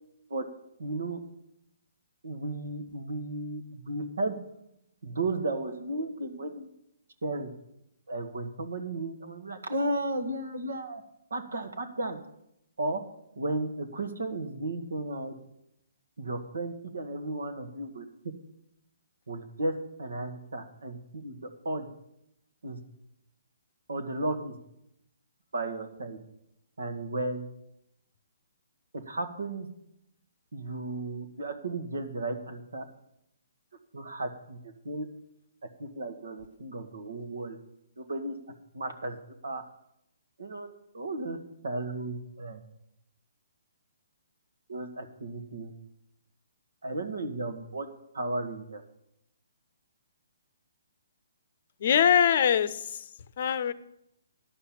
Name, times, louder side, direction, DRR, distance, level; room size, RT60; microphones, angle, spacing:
voice 1, 0.8-1.2 2.2-4.4 5.0-6.7 7.2-7.5 8.1-11.0 11.3-12.2 12.8-13.0 13.3-15.3 16.2-18.3 19.3-21.9 22.6-22.8 23.9-24.6 25.5-26.2 26.8-27.5 28.9-29.7 30.5-32.9 33.9-35.1 35.8-37.6 38.0-38.4 38.7-39.2 39.4-39.6 40.4-41.4 41.6-42.6 44.7-45.7 46.8-47.9 48.1-48.8, right 2 dB, 80° right, 6 dB, 1.6 m, -34 dB
voice 2, 51.8-52.8 53.4-53.7, left 8 dB, 50° left, 16 dB, 0.6 m, -22 dB
11.0 x 5.7 x 8.5 m, 0.80 s
hypercardioid pair, 145°, 0 cm